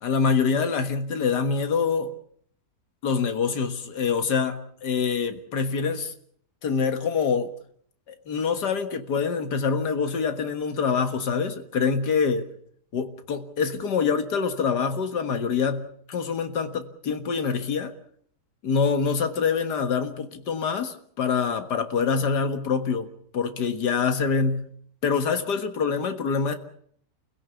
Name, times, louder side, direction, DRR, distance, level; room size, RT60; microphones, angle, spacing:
voice 1, 0.0-2.1 3.0-6.1 6.6-7.5 8.1-12.5 12.9-18.0 18.6-23.1 23.3-24.7 25.0-26.5, left 5 dB, 70° left, 8 dB, 2.2 m, -25 dB
29.0 x 16.5 x 7.0 m, 0.63 s
omnidirectional pair, 1.8 m